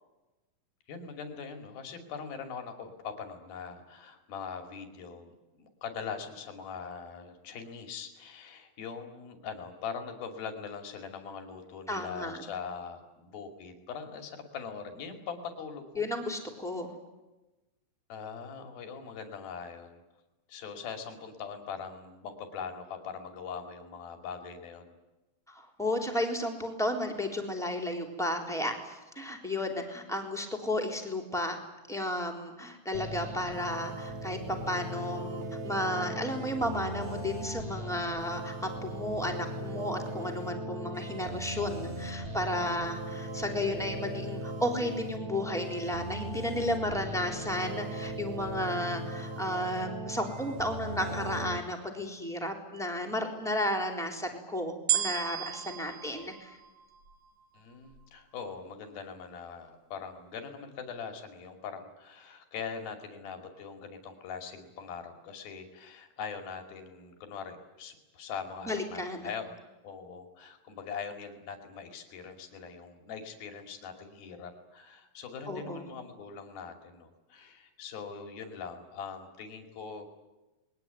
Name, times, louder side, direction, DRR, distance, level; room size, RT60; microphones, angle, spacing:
voice 1, 0.9-16.1 18.1-20.0 20.5-24.9 57.5-69.5 69.8-80.2, left 6 dB, 75° left, 5 dB, 4.4 m, -42 dB
voice 2, 11.9-12.4 16.0-16.9 25.5-31.6 31.9-56.6 68.6-69.3 75.5-75.8, left 1 dB, ahead, 3 dB, 3.3 m, -33 dB
sound 1, 32.9-51.6, right 1 dB, 20° right, 2.5 m, -38 dB
sound 2, 54.9-57.3 57.9-58.0, right 10 dB, 50° right, 2.8 m, -33 dB
28.5 x 21.5 x 9.3 m, 1.1 s
omnidirectional pair, 4.3 m